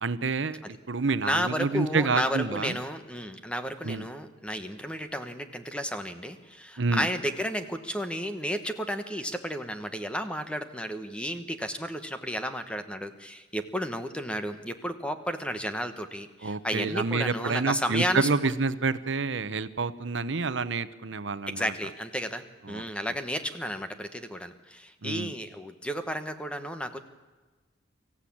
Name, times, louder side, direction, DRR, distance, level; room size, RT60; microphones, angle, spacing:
voice 1, 0.0-2.8 3.8-4.0 6.8-7.1 16.4-21.7 22.7-22.8 25.0-25.3, right 4 dB, 70° right, 13 dB, 0.9 m, -28 dB
voice 2, 1.2-18.3 21.5-27.0, equal, 5° left, 8 dB, 1.1 m, -32 dB
24.5 x 15.0 x 8.7 m, 1.3 s
head